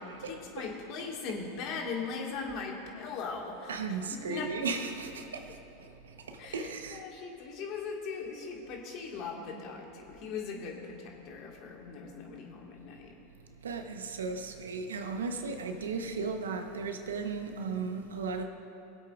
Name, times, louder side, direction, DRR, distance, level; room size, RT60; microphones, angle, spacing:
voice 1, 0.0-3.8 4.3-4.5 6.4-13.1, left 5 dB, 50° left, 1.7 m, -39 dB
voice 2, 3.7-7.0 13.6-18.4, right 4 dB, 90° right, 0.9 m, -36 dB
21.5 x 8.1 x 2.4 m
hypercardioid pair, 105°, 0 cm